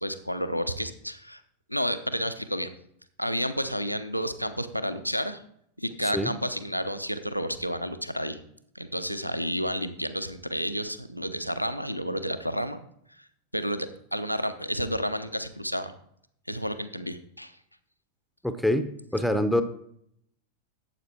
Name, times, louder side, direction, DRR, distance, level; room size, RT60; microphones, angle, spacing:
voice 1, 0.0-1.4 1.7-2.7 3.2-5.4 5.8-8.4 8.7-12.8 13.5-15.9 16.5-17.5, equal, 90° left, 9 dB, 0.8 m, -31 dB
voice 2, 18.4-19.6, left 1 dB, ahead, 10 dB, 0.8 m, -25 dB
12.0 x 8.1 x 4.4 m, 0.69 s
figure-of-eight pair, 90°, 0 cm